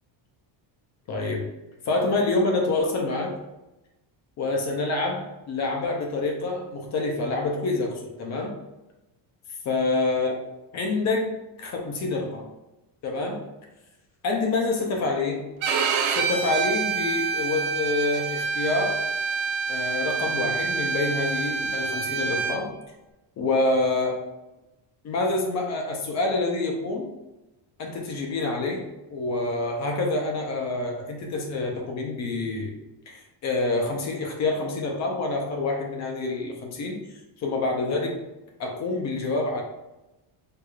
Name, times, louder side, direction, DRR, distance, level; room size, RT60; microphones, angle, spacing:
voice 1, 1.1-1.5 1.8-3.4 4.4-8.5 9.7-10.3 10.7-11.3 11.6-12.5 13.0-13.4 14.2-15.5 16.1-19.0 19.7-22.7 23.4-24.2 25.0-27.1 27.8-28.8 29.1-32.7 33.1-37.0 37.4-38.2 38.6-39.6, left 2 dB, 35° left, 1 dB, 0.5 m, -27 dB
Bowed string instrument, 15.6-22.6, right 5 dB, 70° right, 0.5 m, -27 dB
4.6 x 2.4 x 2.4 m, 0.99 s
cardioid pair, 180°, 49 cm